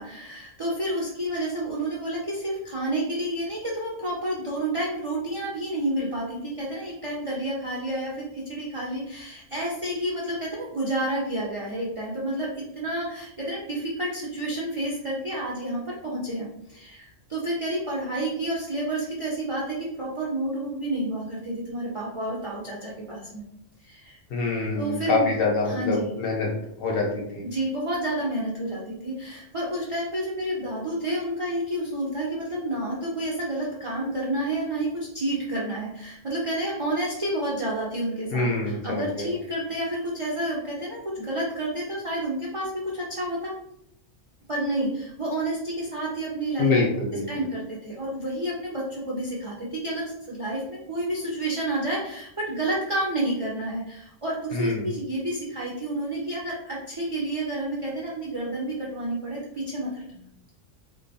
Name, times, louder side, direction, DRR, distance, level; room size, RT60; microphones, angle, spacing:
voice 1, 0.0-23.5 23.8-24.2 24.7-25.3 25.6-26.1 27.4-43.5 44.5-46.7 47.3-60.2, right 1 dB, 60° right, -6 dB, 0.3 m, -30 dB
voice 2, 24.3-26.5 26.8-27.4 38.3-39.3 46.6-47.4 54.5-54.8, left 3 dB, 60° left, -1 dB, 0.7 m, -25 dB
2.4 x 2.2 x 2.6 m, 0.75 s
omnidirectional pair, 1.3 m